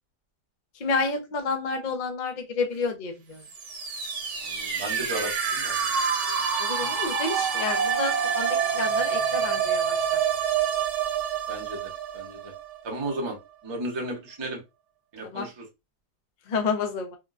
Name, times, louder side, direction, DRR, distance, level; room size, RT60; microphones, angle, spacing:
voice 1, 0.8-3.4 6.6-9.9 15.3-15.5 16.5-17.2, left 4 dB, 65° left, 0.4 m, -30 dB
sound 1, 3.4-13.2, right 7 dB, 55° right, 0.9 m, -27 dB
voice 2, 4.4-5.8 6.8-6.9 11.5-12.5 12.8-13.4 13.6-14.6 15.1-15.6, right 2 dB, 25° right, 0.6 m, -34 dB
3.7 x 2.3 x 2.4 m
omnidirectional pair, 1.7 m